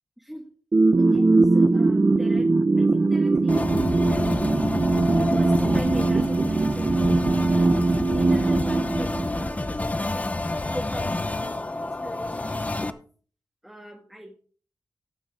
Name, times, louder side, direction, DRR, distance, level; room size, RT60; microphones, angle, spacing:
voice 1, 0.2-0.5 1.0-4.7 5.2-7.7 8.0-10.3 10.7-13.0 13.6-14.4, equal, 5° right, 1 dB, 1.7 m, -41 dB
sound 1, 0.7-9.7, right 3 dB, 35° right, 0.9 m, -21 dB
sound 2, 3.5-12.9, left 2 dB, 20° left, 0.8 m, -29 dB
18.0 x 7.0 x 3.5 m, 0.41 s
wide cardioid pair, 105°, 7 cm